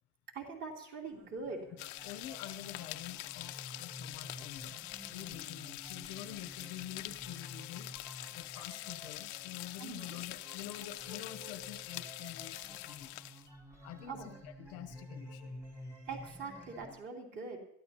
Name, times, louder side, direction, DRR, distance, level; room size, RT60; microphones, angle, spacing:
voice 1, 0.3-1.7 9.8-10.1 14.1-14.3 16.1-17.6, right 4 dB, 35° right, 0 dB, 3.1 m, -43 dB
sound 1, 1.1-17.0, equal, 10° right, 2.0 m, -51 dB
sound 2, 1.8-13.5, left 18 dB, 80° left, 0.8 m, -45 dB
voice 2, 2.0-4.8 5.1-7.9 8.3-13.2 13.8-15.5, left 12 dB, 50° left, 9 dB, 0.9 m, -47 dB
22.0 x 14.0 x 2.9 m, 0.75 s
cardioid pair, 170°, 32 cm